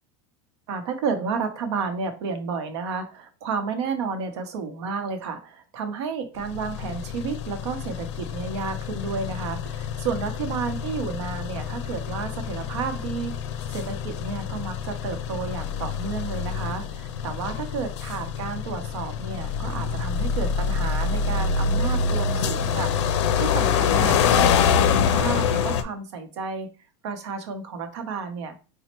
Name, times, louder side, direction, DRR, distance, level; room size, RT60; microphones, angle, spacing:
voice 1, 0.7-13.3 13.7-22.9 23.4-26.7 27.0-28.6, right 5 dB, 80° right, 6 dB, 0.8 m, -31 dB
sound 1, 6.4-25.8, left 6 dB, 85° left, 0.5 m, -26 dB
4.1 x 2.1 x 3.0 m, 0.34 s
supercardioid pair, 175°, 15 cm